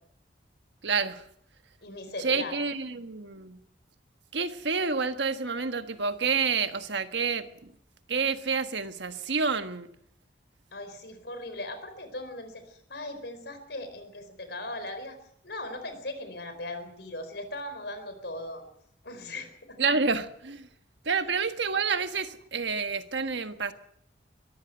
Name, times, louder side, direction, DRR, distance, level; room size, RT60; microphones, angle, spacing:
voice 1, 0.8-1.2 2.2-3.6 4.3-7.7 8.1-9.9 19.8-20.7 21.0-23.7, right 5 dB, 80° right, 1.5 m, -29 dB
voice 2, 1.8-2.5 10.7-15.2 15.4-18.6 19.0-19.8, left 2 dB, 65° left, 4.4 m, -39 dB
23.0 x 14.0 x 7.9 m
head